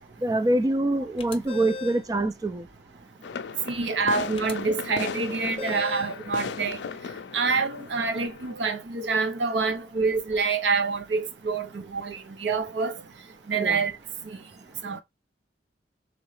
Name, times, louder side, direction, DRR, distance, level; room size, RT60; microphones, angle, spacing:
voice 1, 0.2-2.7 13.5-13.8, right 1 dB, 20° right, 0.3 m, -25 dB
sound 1, 1.2-2.1 4.4-4.5 5.6-6.2, left 4 dB, 30° left, 0.5 m, -37 dB
sound 2, 3.2-8.5, left 6 dB, 80° left, 0.4 m, -37 dB
voice 2, 3.7-6.8 7.3-13.0 13.5-13.9 14.3-14.4 14.8-15.0, right 4 dB, 85° right, 0.6 m, -27 dB
3.8 x 3.1 x 3.1 m
head